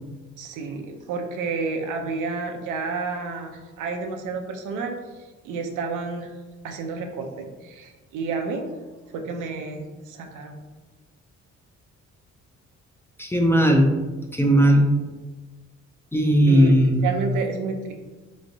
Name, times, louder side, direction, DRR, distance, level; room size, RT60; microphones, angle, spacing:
voice 1, 0.4-5.0 5.4-6.3 6.6-8.7 9.1-10.6 16.5-16.8 17.0-17.9, right 4 dB, 85° right, 3 dB, 0.6 m, -30 dB
voice 2, 13.2-14.0 14.3-14.9 16.1-17.1, equal, 10° left, 2 dB, 0.4 m, -17 dB
3.4 x 3.1 x 2.6 m, 1.3 s
cardioid pair, 90°, 30 cm